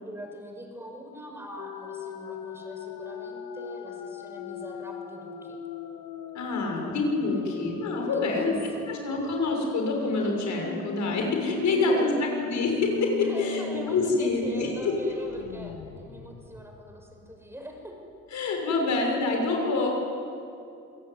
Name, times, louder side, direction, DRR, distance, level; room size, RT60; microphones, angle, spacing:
voice 1, 0.0-5.6 6.7-6.8 8.1-8.8 11.7-12.2 13.2-17.9, equal, 10° right, 2 dB, 6.1 m, -42 dB
sound 1, 1.6-14.0 14.4-14.5 14.9-17.5, left 7 dB, 90° left, 1.8 m, -39 dB
voice 2, 6.3-13.6 13.9-15.0 18.3-19.9, left 3 dB, 70° left, 1 dB, 6.3 m, -26 dB
26.5 x 17.0 x 9.7 m, 2.7 s
cardioid pair, 90°, 30 cm